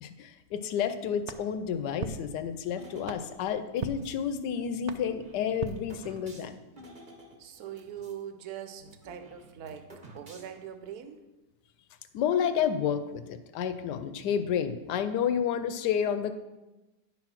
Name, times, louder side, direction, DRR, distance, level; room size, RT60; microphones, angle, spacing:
voice 1, 0.0-6.6 12.1-16.3, left 8 dB, 80° left, 10 dB, 1.2 m, -30 dB
sound 1, 1.2-6.6, right 6 dB, 85° right, 0.6 m, -42 dB
sound 2, 2.8-4.2 4.8-8.2 8.5-8.6 8.8-10.8, right 1 dB, 35° right, 1.0 m, -51 dB
voice 2, 7.4-9.9 10.1-11.2, right 9 dB, 65° right, 8 dB, 1.2 m, -42 dB
9.9 x 4.1 x 5.9 m, 1.1 s
omnidirectional pair, 1.9 m